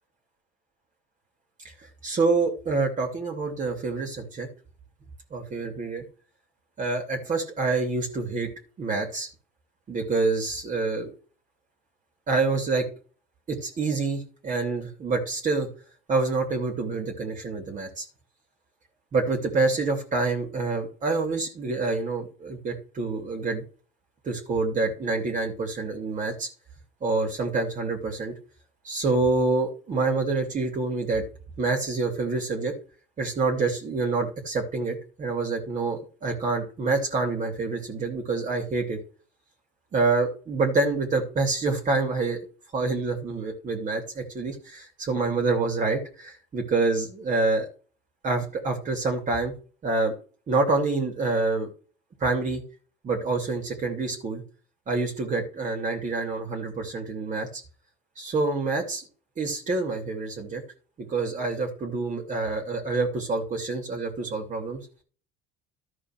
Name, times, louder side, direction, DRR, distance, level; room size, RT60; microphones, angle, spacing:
voice 1, 2.0-4.5 5.3-6.0 6.8-8.5 8.8-9.3 9.9-11.1 12.3-12.8 13.5-15.7 16.1-18.0 19.1-23.6 24.2-26.5 27.0-28.3 28.8-31.2 31.6-32.7 33.2-39.0 39.9-42.4 42.7-47.7 48.2-49.5 49.8-50.1 50.5-51.7 52.2-52.6 53.0-54.4 54.9-57.5 58.2-59.0 59.4-60.6 61.1-64.8, right 3 dB, 35° right, 2 dB, 2.8 m, -27 dB
13.0 x 5.0 x 6.0 m, 0.38 s
cardioid pair, 125°, 21 cm